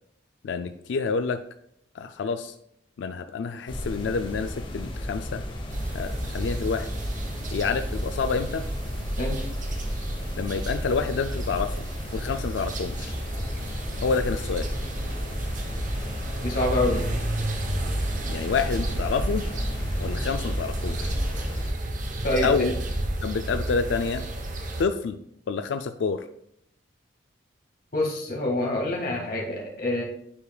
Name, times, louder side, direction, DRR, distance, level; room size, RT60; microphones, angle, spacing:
voice 1, 0.4-1.4 1.9-2.5 3.0-5.4 5.9-6.9 7.5-8.7 10.4-11.9 12.1-13.1 14.0-14.7 18.3-19.5 20.0-21.2 22.4-22.7 23.2-24.2 24.8-25.2 25.5-26.3, left 5 dB, 80° left, 8 dB, 0.4 m, -28 dB
sound 1, 3.7-21.7, left 1 dB, 30° left, 0.9 m, -34 dB
sound 2, 5.7-24.8, right 1 dB, 45° right, 0.8 m, -31 dB
voice 2, 9.2-9.5 16.4-17.0 22.2-22.7 27.9-30.0, left 1 dB, 55° left, -1 dB, 1.8 m, -26 dB
9.8 x 4.8 x 2.3 m, 0.72 s
head